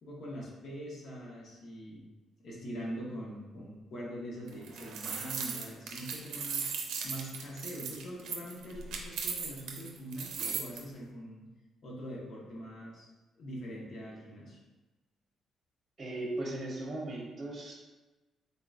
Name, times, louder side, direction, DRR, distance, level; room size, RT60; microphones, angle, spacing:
voice 1, 0.0-2.1 2.4-6.7 7.0-11.5 11.8-13.1 13.3-14.6, equal, 60° left, -3 dB, 1.1 m, -43 dB
sound 1, 4.5-10.8, right 6 dB, 85° right, 0.5 m, -37 dB
voice 2, 16.0-17.7, right 2 dB, 35° right, -4 dB, 0.8 m, -37 dB
3.9 x 3.8 x 2.4 m, 1.1 s
cardioid pair, 90°, 0 cm